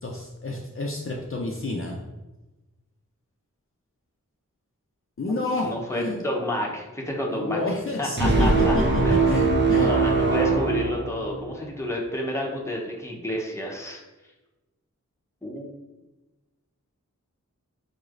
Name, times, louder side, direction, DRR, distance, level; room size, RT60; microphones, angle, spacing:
voice 1, 0.0-2.0 5.2-6.2 7.3-8.8 9.1-9.9, left 2 dB, 40° left, -1 dB, 0.5 m, -30 dB
voice 2, 5.6-7.6 8.0-8.7 9.0-9.2 9.7-14.0 15.4-15.7, left 1 dB, 10° left, -2 dB, 0.8 m, -30 dB
sound 1, 8.2-11.6, right 3 dB, 35° right, 0.6 m, -21 dB
4.5 x 3.1 x 2.5 m, 1.1 s
wide cardioid pair, 50°, 32 cm